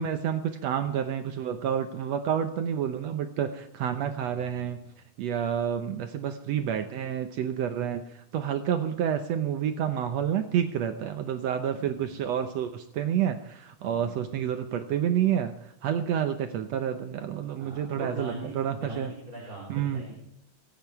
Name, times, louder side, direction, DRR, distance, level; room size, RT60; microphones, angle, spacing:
voice 1, 0.0-4.8 5.2-19.1 19.7-20.0, right 9 dB, 70° right, 7 dB, 1.9 m, -29 dB
voice 2, 11.7-12.5 13.9-14.5 17.6-20.1, right 2 dB, 30° right, -5 dB, 3.8 m, -42 dB
26.0 x 8.9 x 4.7 m, 0.76 s
omnidirectional pair, 3.4 m